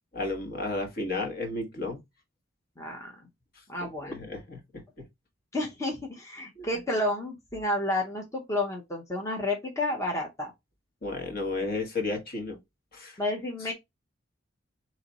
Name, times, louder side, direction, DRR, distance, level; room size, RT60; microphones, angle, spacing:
voice 1, 0.1-2.0 3.8-4.8 6.6-6.7 11.0-12.6 12.9-13.2, left 2 dB, 45° left, 1.3 m, -33 dB
voice 2, 2.8-3.2 3.7-4.2 5.5-10.5 13.2-13.7, left 1 dB, 15° left, 0.8 m, -31 dB
4.1 x 3.0 x 4.1 m
head